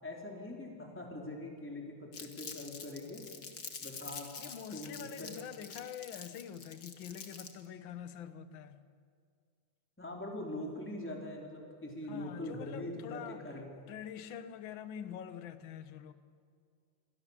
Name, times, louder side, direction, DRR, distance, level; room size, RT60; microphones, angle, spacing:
voice 1, 0.0-3.2 3.8-4.3 4.7-5.3 10.0-13.7, left 1 dB, 5° left, 3.8 m, -42 dB
Crumpling crinkling, 2.1-7.7, left 5 dB, 40° left, 2.1 m, -47 dB
voice 2, 4.4-8.8 12.0-13.4 13.9-16.1, left 8 dB, 60° left, 1.3 m, -45 dB
28.5 x 24.0 x 7.4 m
omnidirectional pair, 3.5 m